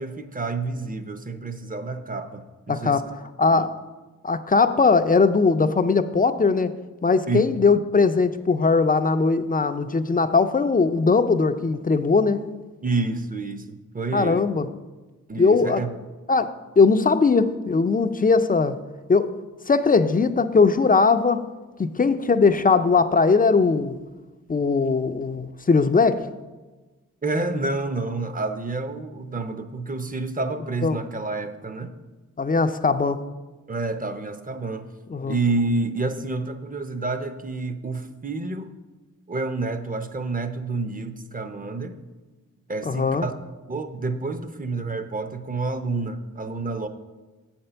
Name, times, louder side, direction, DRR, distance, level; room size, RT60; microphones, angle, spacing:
voice 1, 0.0-3.0 3.5-3.6 7.3-7.5 12.8-14.5 15.3-15.9 27.2-32.0 33.7-34.9 35.3-38.7 39.3-42.0 42.7-43.3 43.7-46.9, right 3 dB, 25° right, 9 dB, 0.7 m, -29 dB
voice 2, 2.7-3.1 3.4-3.7 4.2-6.7 7.0-12.5 14.1-14.7 15.4-15.8 16.3-18.8 19.1-19.3 19.7-21.5 21.8-24.0 24.5-26.2 30.8-31.0 32.4-33.2 35.1-35.4 42.9-43.3, left 4 dB, 25° left, 11 dB, 0.4 m, -20 dB
7.5 x 4.4 x 6.8 m, 1.2 s
cardioid pair, 65°, 32 cm